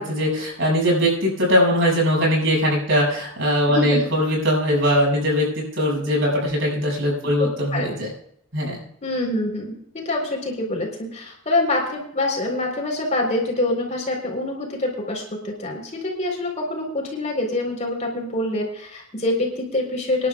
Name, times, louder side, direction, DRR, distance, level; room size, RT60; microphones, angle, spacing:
voice 1, 0.0-8.1 8.5-8.8, equal, 65° right, -3 dB, 7.0 m, -21 dB
voice 2, 3.7-4.0 7.7-8.0 9.0-20.3, left 2 dB, 35° left, 0 dB, 4.0 m, -25 dB
27.0 x 11.0 x 2.4 m, 0.71 s
head